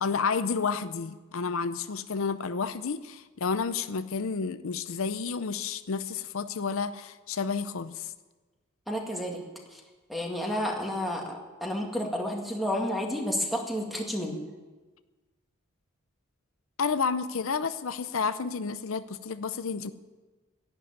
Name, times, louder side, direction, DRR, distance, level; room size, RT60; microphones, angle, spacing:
voice 1, 0.0-8.1 16.8-19.9, left 5 dB, 75° left, 12 dB, 0.6 m, -30 dB
voice 2, 8.9-9.4 9.7-9.8 10.1-14.4, equal, ahead, 0 dB, 2.2 m, -31 dB
11.5 x 11.0 x 9.4 m, 1.3 s
head